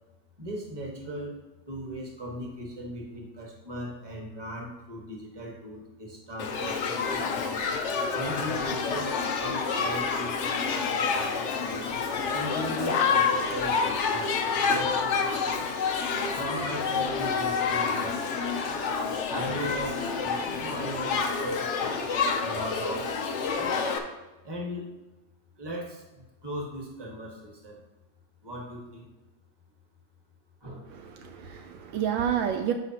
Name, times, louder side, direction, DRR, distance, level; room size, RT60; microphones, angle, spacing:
voice 1, 0.4-7.6 8.1-11.8 12.3-14.3 14.7-15.3 16.3-18.2 19.3-23.7 24.4-24.9 25.6-27.8 28.4-29.1 30.6-30.9 32.4-32.6, equal, 15° right, -1 dB, 1.2 m, -38 dB
Shout / Human group actions, 6.4-24.0, left 5 dB, 80° left, 0.6 m, -28 dB
voice 2, 30.9-32.7, right 9 dB, 75° right, 5 dB, 1.3 m, -29 dB
12.0 x 4.9 x 2.9 m, 1.1 s
omnidirectional pair, 2.2 m